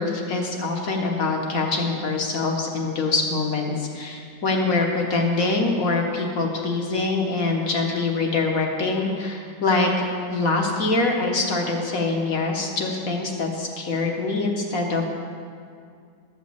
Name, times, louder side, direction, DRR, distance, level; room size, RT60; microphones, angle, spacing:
voice 1, 0.0-15.0, left 3 dB, 50° left, 1 dB, 1.5 m, -24 dB
12.5 x 5.2 x 7.8 m, 2.2 s
omnidirectional pair, 2.0 m